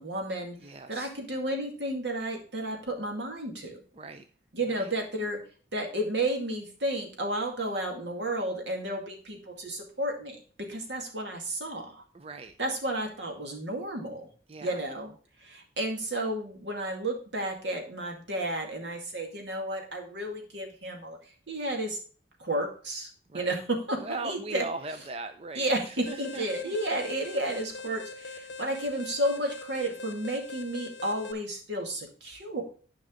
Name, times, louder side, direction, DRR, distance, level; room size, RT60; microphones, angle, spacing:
voice 1, 0.0-3.8 4.5-5.4 5.7-12.0 12.6-14.3 14.6-15.1 15.4-22.0 22.4-23.1 23.3-24.6 25.5-32.6, right 1 dB, 80° right, 2 dB, 2.2 m, -32 dB
voice 2, 0.6-1.1 3.9-4.3 4.7-4.9 12.1-12.5 14.5-14.8 23.3-23.6 24.0-26.7 28.5-28.6, right 3 dB, 35° right, 8 dB, 0.4 m, -39 dB
Alarm, 26.1-31.3, left 3 dB, 85° left, 0.7 m, -43 dB
10.0 x 5.3 x 3.8 m, 0.40 s
head